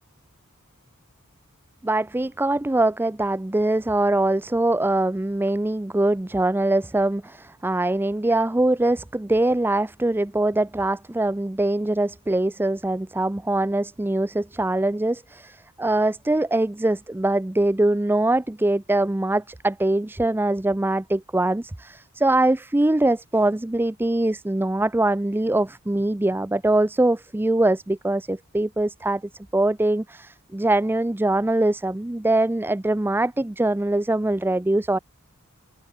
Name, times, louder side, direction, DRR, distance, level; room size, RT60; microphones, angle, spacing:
voice 1, 1.8-29.2 29.5-35.0, right 2 dB, 10° right, 0.5 m, -23 dB
open air
head